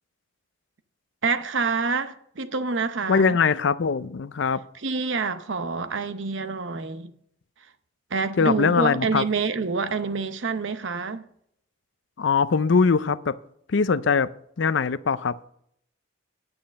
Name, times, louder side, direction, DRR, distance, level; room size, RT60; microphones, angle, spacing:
voice 1, 1.2-3.4 4.8-7.1 8.1-11.2, right 4 dB, 65° right, 0.8 m, -27 dB
voice 2, 3.1-4.6 8.4-9.2 12.2-13.3 13.7-14.3 14.6-15.4, left 5 dB, 60° left, 0.5 m, -21 dB
9.8 x 8.7 x 5.2 m
head